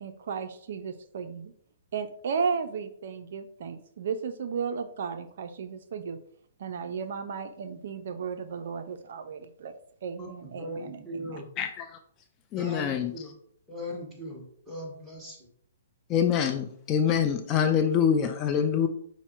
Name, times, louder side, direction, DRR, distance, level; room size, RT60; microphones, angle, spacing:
voice 1, 0.0-1.5 1.9-6.2 6.6-9.7 10.0-11.4, right 6 dB, 65° right, 9 dB, 0.4 m, -34 dB
voice 2, 10.6-11.5 12.5-13.4 13.7-15.5, left 1 dB, 10° right, -3 dB, 1.5 m, -39 dB
voice 3, 12.5-13.1 16.1-18.9, left 8 dB, 25° left, 5 dB, 0.4 m, -25 dB
5.6 x 2.1 x 4.3 m, 0.64 s
hypercardioid pair, 145°, 0 cm